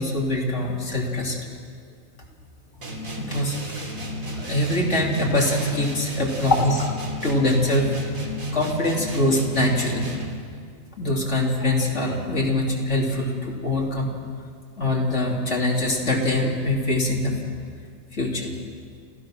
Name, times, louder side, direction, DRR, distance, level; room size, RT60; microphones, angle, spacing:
voice 1, 0.0-1.5 3.2-3.8 4.3-6.9 7.2-7.9 8.5-10.1 11.0-14.1 14.8-17.3 18.1-18.5, left 1 dB, 60° left, -1 dB, 3.2 m, -23 dB
sound 1, 2.8-10.5, equal, 80° right, 3.1 m, -32 dB
29.5 x 15.0 x 6.1 m, 2.1 s
omnidirectional pair, 1.4 m